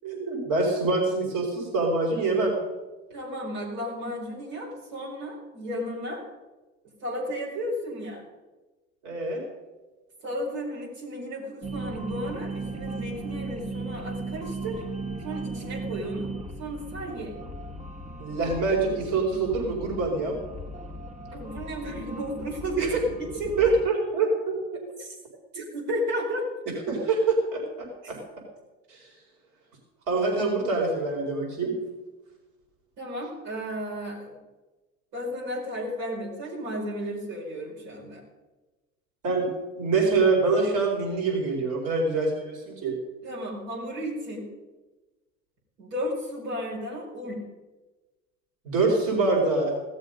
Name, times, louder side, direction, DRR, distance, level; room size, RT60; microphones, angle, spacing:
voice 1, 0.0-2.5 9.0-9.4 18.2-20.4 22.8-22.9 23.6-24.8 26.9-28.2 28.9-29.0 30.1-31.7 39.2-39.5 39.8-43.0 48.6-49.7, right 3 dB, 65° right, -1 dB, 4.9 m, -25 dB
voice 2, 3.1-6.2 7.0-8.2 10.2-14.8 15.2-16.3 16.6-17.3 21.3-23.7 25.0-25.1 25.5-26.5 33.0-34.4 35.1-38.2 43.2-44.5 45.8-47.4, equal, 85° right, -4 dB, 5.0 m, -33 dB
sound 1, 11.6-23.9, right 2 dB, 20° right, 1.6 m, -37 dB
16.0 x 13.0 x 5.3 m, 1.2 s
supercardioid pair, 80°, 34 cm